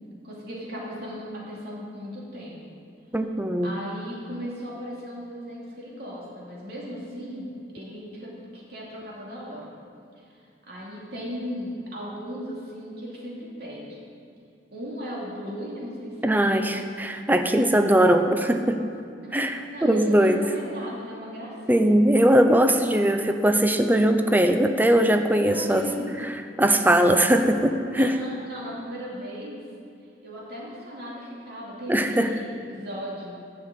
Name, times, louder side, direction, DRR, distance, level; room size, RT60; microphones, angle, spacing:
voice 1, 0.2-2.8 3.6-9.7 10.6-14.1 14.7-16.7 19.7-22.0 25.3-26.2 28.0-29.6 30.2-33.3, equal, 60° right, -4 dB, 2.8 m, -36 dB
voice 2, 3.1-3.8 16.2-18.8 19.3-20.4 21.7-25.8 26.2-28.2 31.9-32.3, right 1 dB, 10° right, 6 dB, 0.6 m, -20 dB
12.0 x 6.6 x 7.8 m, 2.4 s
head